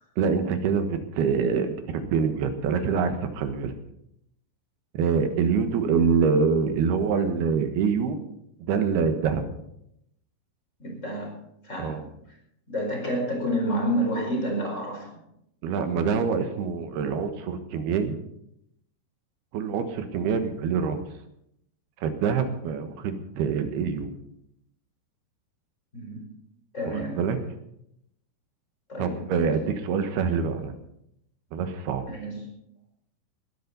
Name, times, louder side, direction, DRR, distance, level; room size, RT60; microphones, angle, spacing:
voice 1, 0.2-3.7 4.9-8.2 8.6-9.4 11.8-12.0 15.6-18.1 19.5-21.0 22.0-24.1 27.2-27.4 29.0-30.7 31.5-32.0, right 6 dB, 75° right, 8 dB, 3.3 m, -25 dB
voice 2, 10.8-11.3 11.6-12.1 12.7-15.2 25.9-26.2 26.7-27.2 28.9-29.2 32.1-32.4, equal, 15° left, 0 dB, 4.8 m, -29 dB
20.0 x 13.0 x 4.1 m, 0.76 s
omnidirectional pair, 4.6 m